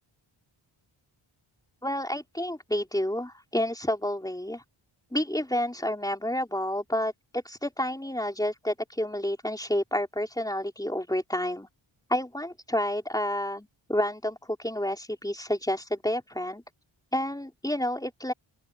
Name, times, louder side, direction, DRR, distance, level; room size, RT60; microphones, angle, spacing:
voice 1, 1.8-4.6 5.1-11.7 12.1-16.6 17.1-18.3, left 1 dB, 10° left, 4.2 m, -29 dB
open air
wide cardioid pair, 75°, 49 cm